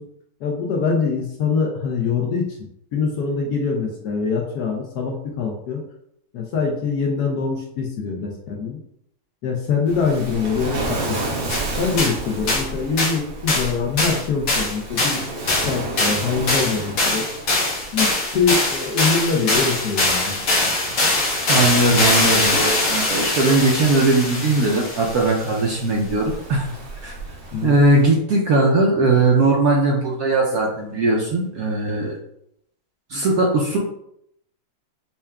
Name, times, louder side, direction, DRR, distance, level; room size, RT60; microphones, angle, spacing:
voice 1, 0.4-5.8 6.3-8.8 9.4-11.0 11.8-15.2 15.5-17.3 17.9-20.4 20.6-20.7 27.5-27.8, left 5 dB, 70° left, 0 dB, 1.0 m, -24 dB
Waves surf, 9.9-28.0, right 2 dB, 90° right, 1.7 m, -33 dB
sound 1, 11.5-11.6 12.0-12.2 12.5-12.7 13.0-13.2 13.5-13.7 14.0-25.5, left 2 dB, 55° left, 1.3 m, -22 dB
voice 2, 21.2-26.7 27.0-27.1 27.6-32.2 33.1-33.8, right 2 dB, 70° right, -2 dB, 0.9 m, -19 dB
5.5 x 2.3 x 2.2 m, 0.75 s
omnidirectional pair, 2.0 m